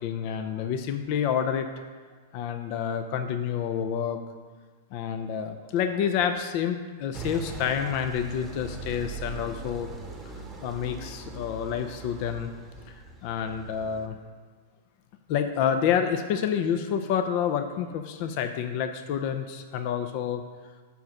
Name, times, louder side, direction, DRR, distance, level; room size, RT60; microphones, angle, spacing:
voice 1, 0.0-1.7 2.3-4.2 4.9-9.9 10.6-12.5 12.9-14.2 15.3-20.4, left 8 dB, 50° left, 7 dB, 0.5 m, -28 dB
sound 1, 7.1-14.1, right 3 dB, 15° right, 0.9 m, -40 dB
5.2 x 4.7 x 6.0 m, 1.5 s
hypercardioid pair, 110°, 0 cm